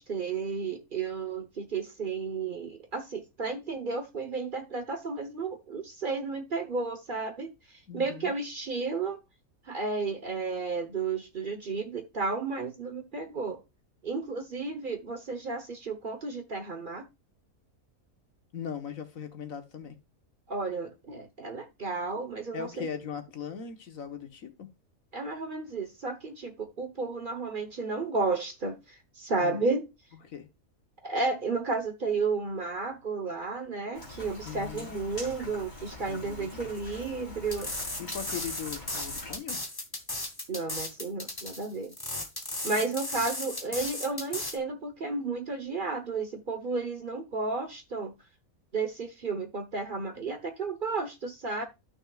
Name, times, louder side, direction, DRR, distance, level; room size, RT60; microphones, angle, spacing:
voice 1, 0.0-9.2 9.7-13.6 14.0-17.0 20.5-22.9 25.1-29.9 31.0-37.7 40.5-41.9 42.6-48.1 48.7-51.6, right 4 dB, 40° right, 1.1 m, -32 dB
voice 2, 7.9-8.3 18.5-20.0 22.5-24.7 29.4-29.6 30.2-30.5 34.4-34.9 36.1-36.5 37.9-39.6, left 7 dB, 70° left, 1.6 m, -39 dB
Rain, 33.9-39.4, left 2 dB, 30° left, 3.0 m, -44 dB
sound 1, 37.5-44.6, left 2 dB, 15° left, 1.3 m, -36 dB
13.0 x 6.2 x 2.4 m
omnidirectional pair, 1.5 m